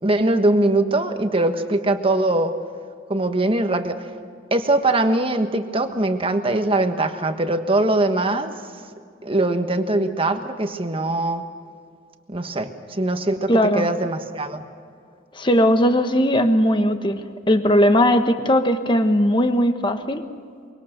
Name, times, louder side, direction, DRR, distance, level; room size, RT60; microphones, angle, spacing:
voice 1, 0.0-2.5 3.1-4.1 4.5-8.5 9.2-11.4 12.3-14.6, right 2 dB, 30° right, 7 dB, 1.4 m, -22 dB
voice 2, 13.5-13.9 15.3-20.2, equal, 25° left, 8 dB, 1.3 m, -18 dB
24.5 x 24.0 x 6.7 m, 2.2 s
head